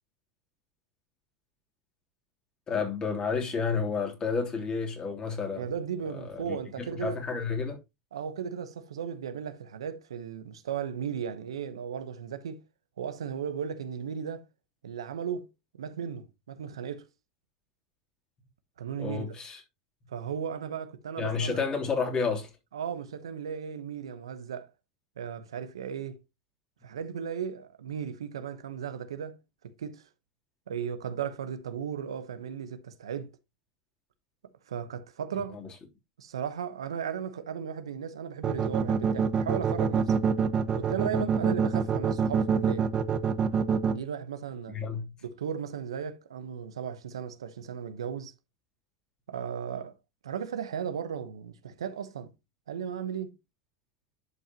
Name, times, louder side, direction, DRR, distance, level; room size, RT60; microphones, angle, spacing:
voice 1, 2.7-5.6 6.1-6.6 7.0-7.8 19.0-19.6 21.2-22.5 35.5-35.7 44.7-45.1, left 5 dB, 30° left, 3.2 m, -30 dB
voice 2, 5.6-7.2 8.1-12.6 13.0-14.5 14.8-15.5 15.7-17.1 18.8-19.3 20.1-21.6 22.7-24.7 25.2-26.2 26.8-29.4 29.6-30.0 30.7-33.3 34.7-35.6 36.2-40.1 40.7-42.9 43.9-44.8 45.2-48.3 49.3-49.9 50.2-52.3 52.7-53.4, right 8 dB, 85° right, 1.0 m, -36 dB
sound 1, 38.4-43.9, right 6 dB, 30° right, 0.9 m, -25 dB
11.0 x 5.6 x 2.9 m
hypercardioid pair, 95°, 3 cm